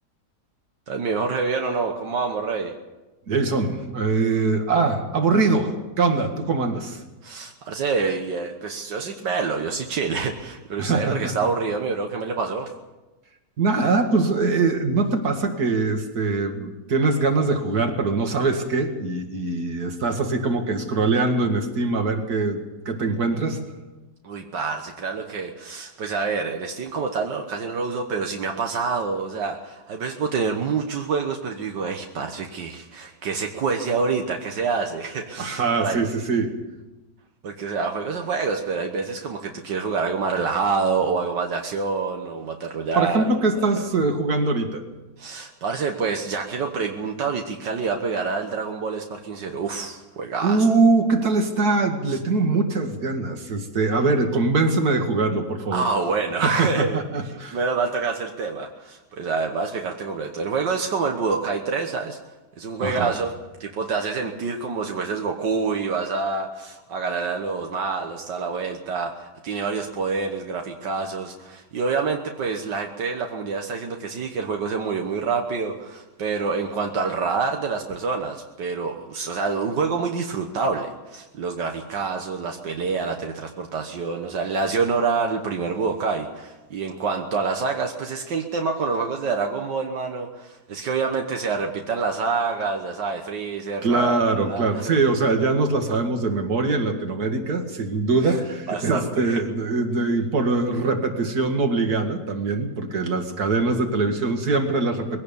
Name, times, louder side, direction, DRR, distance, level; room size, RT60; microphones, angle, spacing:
voice 1, 0.9-2.7 7.2-12.7 24.2-36.0 37.4-43.4 43.8-43.9 45.2-50.6 52.1-52.2 55.7-57.0 57.5-62.2 62.6-63.3 63.6-94.1 94.4-94.8 98.2-98.4 98.7-99.4, right 4 dB, 85° right, 3 dB, 2.0 m, -27 dB
voice 2, 3.3-7.0 10.8-11.3 13.6-23.6 35.4-36.5 43.0-44.8 50.4-55.8 56.4-57.6 62.8-63.1 93.8-105.2, right 3 dB, 60° right, 5 dB, 2.5 m, -22 dB
21.5 x 17.0 x 7.0 m, 1.1 s
omnidirectional pair, 1.9 m